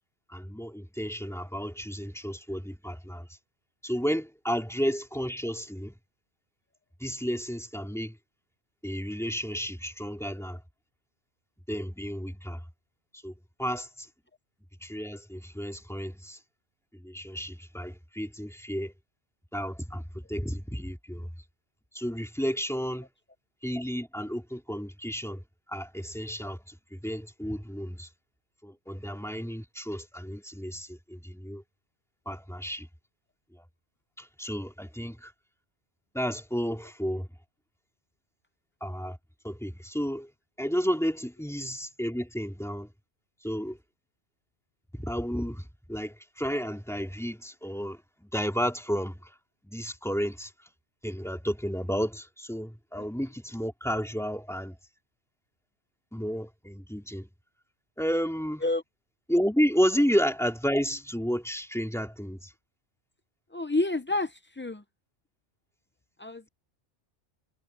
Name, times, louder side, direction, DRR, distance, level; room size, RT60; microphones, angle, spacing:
voice 1, 0.3-3.3 3.8-6.0 7.0-8.2 8.8-10.6 11.7-12.6 13.1-13.3 13.6-14.1 14.8-16.4 16.9-18.9 19.5-21.3 21.9-23.1 23.6-25.4 25.7-28.1 28.6-31.6 32.2-32.9 33.5-33.6 34.2-35.3 36.1-37.3 38.8-39.2 39.4-40.3 40.6-42.9 43.4-43.8 44.9-49.3 49.6-50.5 51.0-54.8 56.1-57.3 58.0-58.6 59.3-62.5, equal, ahead, 3.0 m, -32 dB
voice 2, 63.5-64.8 66.2-66.5, left 2 dB, 15° left, 0.3 m, -29 dB
omnidirectional pair, 1.2 m